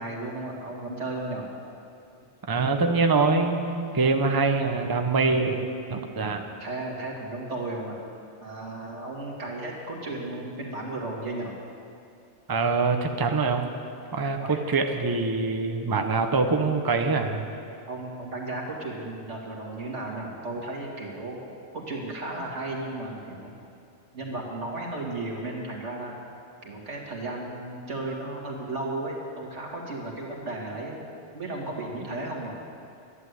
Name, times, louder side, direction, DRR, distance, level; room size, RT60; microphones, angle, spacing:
voice 1, 0.0-1.5 6.2-6.3 6.6-8.0 8.4-11.6 14.4-14.6 17.9-21.5 21.7-23.6 24.1-26.2 26.6-31.0 31.3-32.6, right 2 dB, 85° right, -2 dB, 2.4 m, -34 dB
voice 2, 2.5-6.5 12.5-13.7 14.1-17.5, right 4 dB, 20° right, 5 dB, 0.7 m, -24 dB
11.5 x 11.0 x 8.1 m, 2.6 s
omnidirectional pair, 1.2 m